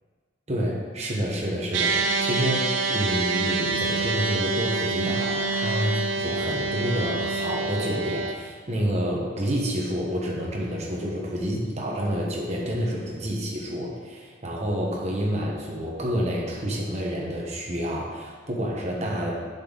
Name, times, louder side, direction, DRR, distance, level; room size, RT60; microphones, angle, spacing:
voice 1, 0.5-19.3, equal, 35° right, -2 dB, 1.3 m, -28 dB
sound 1, 1.7-8.3, right 3 dB, 85° right, 0.7 m, -26 dB
7.7 x 5.6 x 4.0 m, 1.5 s
head